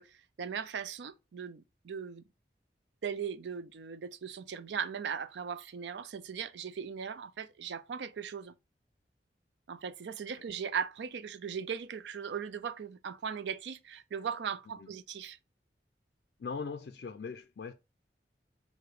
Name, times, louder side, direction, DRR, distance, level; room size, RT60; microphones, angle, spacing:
voice 1, 0.0-2.2 3.0-8.5 9.7-15.4, right 7 dB, 80° right, 0.4 m, -38 dB
voice 2, 16.4-17.7, left 5 dB, 60° left, 0.3 m, -40 dB
4.8 x 2.1 x 4.7 m
head